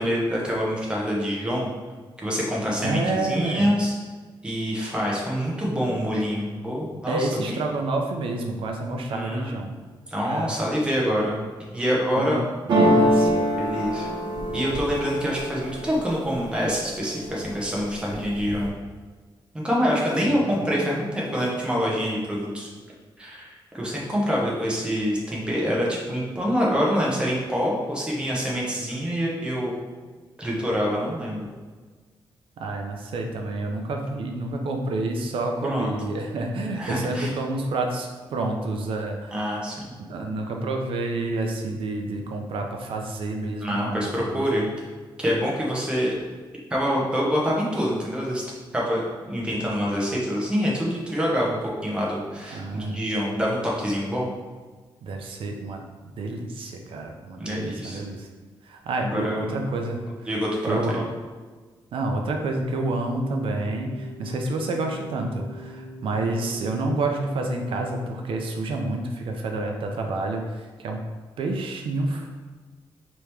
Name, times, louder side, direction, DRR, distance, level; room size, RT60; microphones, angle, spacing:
voice 1, 0.0-1.7 2.2-3.9 4.4-7.6 9.1-9.6 10.1-12.4 13.6-18.7 19.5-22.7 23.2-29.8 30.4-31.5 35.6-35.9 36.8-37.3 39.3-39.8 43.6-44.7 45.2-46.1 46.7-48.5 48.7-54.3 57.4-58.0 59.0-59.6 60.3-60.8, equal, 10° right, -4 dB, 0.9 m, -26 dB
voice 2, 2.8-3.7 7.1-9.7 10.2-10.5 12.2-12.4 12.7-13.5 32.6-39.5 40.1-44.4 52.5-53.0 55.0-58.3 58.6-60.3 60.7-61.1 61.9-71.0 71.4-72.3, right 2 dB, 80° right, 3 dB, 0.6 m, -29 dB
sound 1, 12.7-16.6 17.0-17.6 17.9-18.7, equal, 60° right, 1.0 m, -24 dB
sound 2, 62.6-68.1, right 1 dB, 45° left, 0.6 m, -41 dB
4.8 x 3.0 x 3.4 m, 1.4 s
wide cardioid pair, 160°, 9 cm